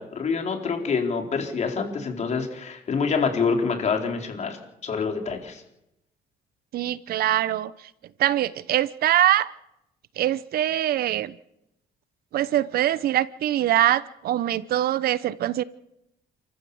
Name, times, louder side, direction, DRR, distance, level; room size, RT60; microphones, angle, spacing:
voice 1, 0.0-5.6, left 5 dB, 45° left, 3 dB, 4.3 m, -26 dB
voice 2, 6.7-7.7 8.2-9.5 10.2-11.3 12.3-15.6, right 12 dB, 65° right, 18 dB, 0.8 m, -23 dB
29.5 x 14.5 x 7.1 m, 0.86 s
cardioid pair, 110°, 17 cm